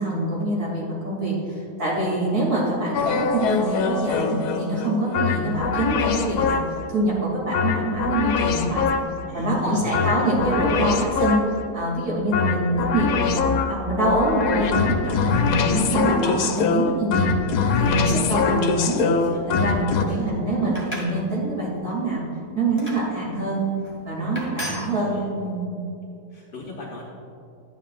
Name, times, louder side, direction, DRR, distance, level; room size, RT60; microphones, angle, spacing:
voice 1, 0.0-6.6 6.9-8.9 9.3-11.4 11.7-13.4 13.7-17.3 17.8-19.1 19.5-22.2 22.5-23.6 24.0-25.6, right 2 dB, 75° right, -5 dB, 3.0 m, -25 dB
sound 1, 2.9-6.9 7.5-9.3 9.9-11.7 12.3-20.1, left 5 dB, 85° left, 1.2 m, -23 dB
voice 2, 9.3-10.5 19.1-19.4 20.1-20.8 24.6-25.3 26.3-27.0, left 2 dB, 45° left, -3 dB, 1.0 m, -38 dB
sound 2, 20.6-21.2 21.7-22.0 22.8-23.0 23.8-24.0 24.4-24.9, equal, 5° right, 1.8 m, -34 dB
11.5 x 9.2 x 2.4 m, 2.6 s
omnidirectional pair, 1.6 m